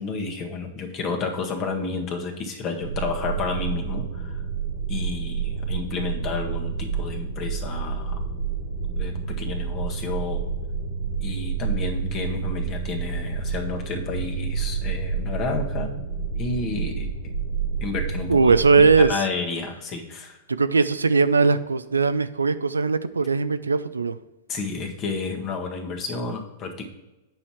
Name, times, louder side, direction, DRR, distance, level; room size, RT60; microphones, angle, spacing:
voice 1, 0.0-4.4 4.9-8.2 9.0-10.4 11.2-15.9 16.4-17.1 17.8-18.6 19.0-20.4 24.5-26.9, left 4 dB, 35° left, 3 dB, 1.7 m, -31 dB
sound 1, 2.8-19.1, right 6 dB, 65° right, 1.7 m, -29 dB
voice 2, 18.3-19.2 20.5-24.2, right 4 dB, 80° right, 13 dB, 0.4 m, -19 dB
8.9 x 5.6 x 4.6 m, 1.0 s
figure-of-eight pair, 100°, 0 cm